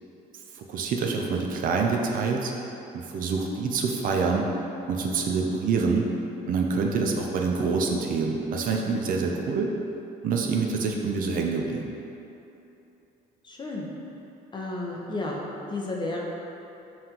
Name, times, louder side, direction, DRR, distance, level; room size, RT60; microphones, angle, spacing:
voice 1, 0.5-2.5 2.9-4.5 4.9-6.1 6.4-9.7 10.2-11.9, right 4 dB, 55° right, 1 dB, 0.4 m, -26 dB
voice 2, 13.4-13.9 14.5-15.4 15.7-16.2, left 2 dB, 25° left, -2 dB, 0.6 m, -32 dB
5.5 x 2.5 x 2.8 m, 3.0 s
cardioid pair, 110°, 17 cm